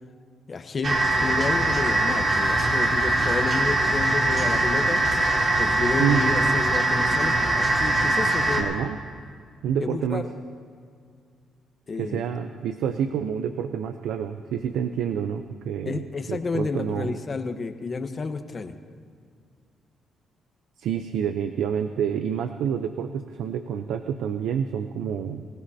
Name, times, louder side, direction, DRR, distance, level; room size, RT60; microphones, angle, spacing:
voice 1, 0.5-5.0 5.6-8.6 9.8-10.2 11.9-12.3 15.8-18.8, left 4 dB, 40° left, 7 dB, 1.1 m, -30 dB
sound 1, 0.8-8.6, right 2 dB, 45° right, 3.1 m, -22 dB
voice 2, 8.6-9.0 9.6-10.2 12.0-16.0 16.3-17.1 20.8-25.5, right 8 dB, 85° right, 8 dB, 0.6 m, -28 dB
25.0 x 16.0 x 2.8 m, 2.2 s
cardioid pair, 90°, 0 cm